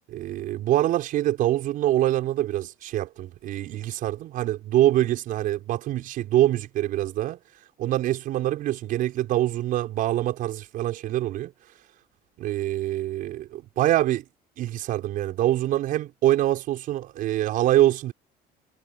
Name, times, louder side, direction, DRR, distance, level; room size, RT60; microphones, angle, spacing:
voice 1, 0.1-7.4 7.8-11.5 12.4-14.2 14.6-18.1, right 14 dB, 55° right, 6.2 m, -24 dB
cardioid pair, 165°, 17 cm